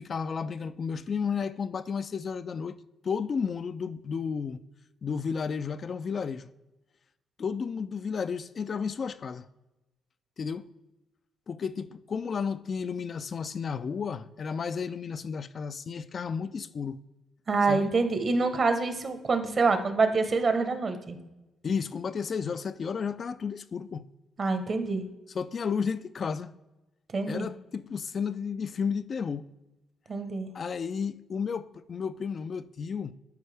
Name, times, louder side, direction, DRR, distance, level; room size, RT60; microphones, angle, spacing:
voice 1, 0.0-4.6 5.0-6.5 7.4-9.5 10.4-10.7 11.5-17.0 17.7-17.9 21.6-24.0 25.3-26.6 27.2-29.5 30.5-33.1, left 6 dB, 45° left, 0.3 m, -32 dB
voice 2, 17.5-21.2 24.4-25.0 27.1-27.5 30.1-30.5, right 4 dB, 45° right, 1.0 m, -26 dB
11.5 x 4.6 x 3.4 m
cardioid pair, 90°, 0 cm